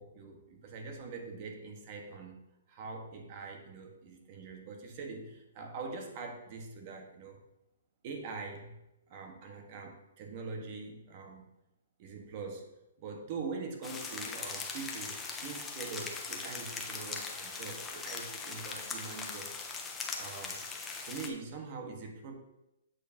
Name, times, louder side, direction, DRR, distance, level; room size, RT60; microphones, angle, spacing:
voice 1, 0.0-2.4 2.7-7.4 8.0-8.7 9.1-11.5 12.0-12.7 13.0-19.7 20.2-20.6 21.0-22.3, right 4 dB, 40° right, 3 dB, 1.5 m, -43 dB
sound 1, 13.8-21.3, left 4 dB, 15° left, 0.9 m, -40 dB
8.2 x 6.5 x 2.9 m, 0.90 s
hypercardioid pair, 145°, 0 cm